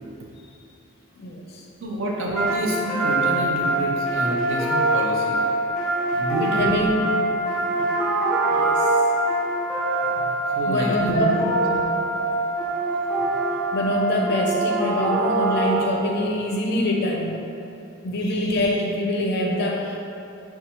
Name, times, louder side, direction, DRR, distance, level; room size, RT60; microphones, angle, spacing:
voice 1, 1.2-1.6 6.4-7.0 7.4-7.9 8.5-8.9 10.7-11.4 13.7-17.3 18.0-20.0, left 1 dB, 50° left, -1 dB, 0.4 m, -25 dB
voice 2, 1.8-5.4 6.1-6.9 10.1-11.8 13.2-13.3, right 1 dB, 65° right, -2 dB, 0.6 m, -28 dB
sound 1, 2.4-16.2, right 2 dB, ahead, 0.8 m, -24 dB
5.3 x 2.3 x 2.9 m, 2.8 s
head